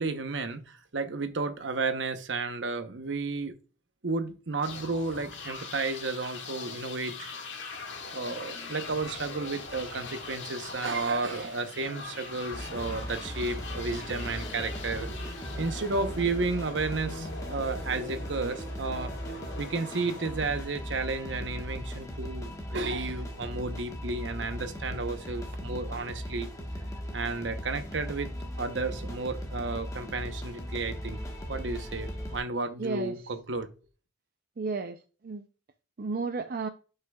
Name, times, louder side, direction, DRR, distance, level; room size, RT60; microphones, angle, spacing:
voice 1, 0.0-3.5 4.0-7.3 8.1-15.1 15.6-19.1 19.6-26.5 27.1-28.3 28.6-31.2 31.5-33.7, right 3 dB, 70° right, 0.9 m, -32 dB
sound 1, 4.6-21.3, left 3 dB, 75° left, 1.8 m, -42 dB
sound 2, 12.5-32.4, equal, 20° left, 1.3 m, -38 dB
voice 2, 32.8-33.2 34.6-35.4 36.0-36.7, right 4 dB, 50° right, 0.5 m, -33 dB
11.5 x 5.6 x 2.3 m
head